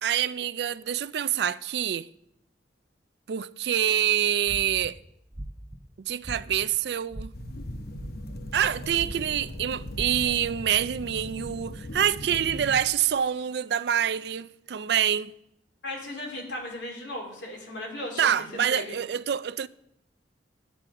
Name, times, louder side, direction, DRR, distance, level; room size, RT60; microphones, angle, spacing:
voice 1, 0.0-2.1 3.3-5.0 6.0-7.3 8.5-15.3 18.2-19.7, right 9 dB, 60° right, 0.4 m, -26 dB
sound 1, 4.4-4.9 5.3-5.8 6.2-6.7 7.1-7.5 8.0-8.6 8.9-9.4 9.9-10.1, right 1 dB, 20° right, 0.8 m, -38 dB
sound 2, 7.3-12.9, left 1 dB, 55° left, 0.9 m, -39 dB
voice 2, 15.8-19.0, left 1 dB, 75° left, 2.9 m, -36 dB
10.5 x 9.1 x 4.9 m
head